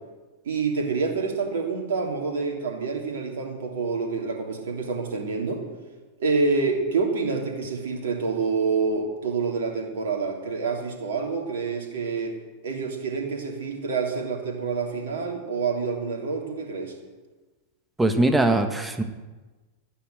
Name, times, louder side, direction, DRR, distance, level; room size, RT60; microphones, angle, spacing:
voice 1, 0.4-5.6 6.2-12.3 12.6-16.9, right 4 dB, 60° right, 1 dB, 3.1 m, -27 dB
voice 2, 18.0-19.0, right 2 dB, 10° right, 7 dB, 1.5 m, -21 dB
12.5 x 10.0 x 8.0 m, 1.2 s
figure-of-eight pair, 90°, 0 cm